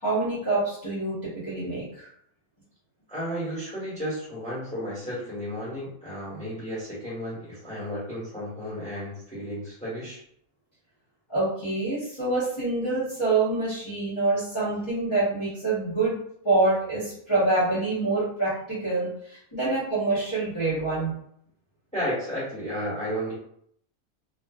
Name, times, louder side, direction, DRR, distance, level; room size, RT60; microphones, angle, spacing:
voice 1, 0.0-2.1 11.3-16.1 16.4-21.1, right 2 dB, 20° left, -11 dB, 1.0 m, -26 dB
voice 2, 3.1-10.2 21.9-23.3, equal, 5° left, -9 dB, 1.2 m, -33 dB
2.5 x 2.4 x 2.3 m, 0.68 s
omnidirectional pair, 1.5 m